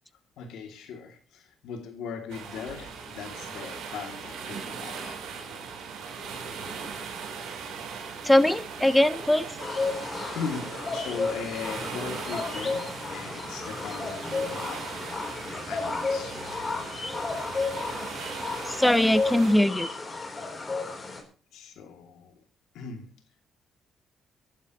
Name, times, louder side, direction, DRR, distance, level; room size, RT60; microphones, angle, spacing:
voice 1, 0.4-5.2 6.5-6.6 10.3-15.2 15.4-16.6 21.5-22.4 22.7-23.2, left 6 dB, 85° left, 2.6 m, -39 dB
sound 1, 2.3-19.5, right 5 dB, 85° right, 5.1 m, -39 dB
voice 2, 8.2-9.5 18.7-19.9, left 1 dB, 5° left, 1.1 m, -21 dB
sound 2, 9.6-21.2, left 3 dB, 30° left, 3.7 m, -32 dB
24.0 x 11.5 x 3.1 m
cardioid pair, 90°, 0 cm